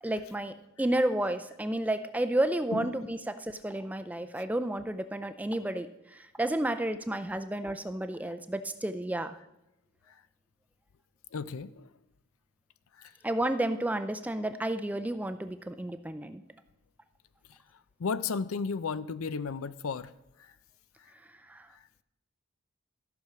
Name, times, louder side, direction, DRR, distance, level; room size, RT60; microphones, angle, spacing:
voice 1, 0.0-5.9 6.1-9.4 13.2-16.4 21.5-21.7, right 1 dB, 5° right, 10 dB, 0.3 m, -31 dB
voice 2, 2.7-3.0 11.3-11.9 13.0-13.1 18.0-20.1, left 5 dB, 80° left, 15 dB, 0.5 m, -34 dB
13.5 x 6.2 x 5.7 m, 0.89 s
head